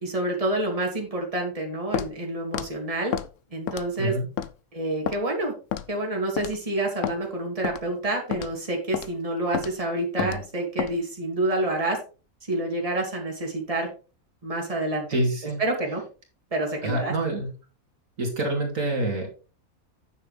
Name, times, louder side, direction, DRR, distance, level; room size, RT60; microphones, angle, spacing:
voice 1, 0.0-3.1 3.5-4.2 4.7-5.5 5.9-12.0 12.5-13.9 14.4-15.1 15.6-16.0 16.5-17.1, right 1 dB, 25° right, 1 dB, 2.6 m, -28 dB
Walk footsteps, 1.9-2.1 2.5-2.7 3.1-3.3 3.7-4.0 4.4-4.5 5.1-5.2 5.7-5.9 6.4-6.6 7.0-7.2 7.6-7.8 8.3-8.5 8.9-9.1 9.5-9.7 10.2-10.4 10.8-11.0, left 9 dB, 70° left, 1.0 m, -29 dB
voice 2, 15.1-15.6 16.8-17.5 18.2-19.3, right 1 dB, 65° right, 1 dB, 2.9 m, -26 dB
9.5 x 7.3 x 3.3 m, 0.34 s
omnidirectional pair, 1.5 m